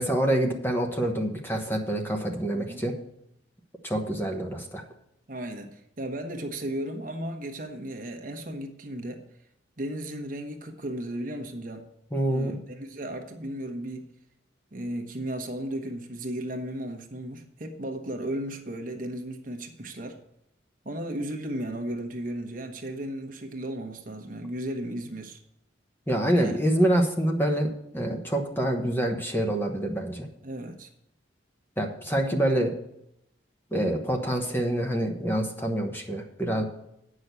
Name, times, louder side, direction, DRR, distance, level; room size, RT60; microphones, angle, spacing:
voice 1, 0.0-3.0 3.8-4.8 12.1-12.6 26.1-30.3 31.8-32.7 33.7-36.6, right 1 dB, 10° left, 3 dB, 1.1 m, -26 dB
voice 2, 2.5-2.8 5.3-9.2 9.8-11.9 12.3-14.1 14.7-20.2 20.8-25.4 26.3-26.6 30.4-30.9, right 1 dB, 45° right, 4 dB, 1.2 m, -35 dB
8.8 x 6.3 x 8.1 m, 0.79 s
head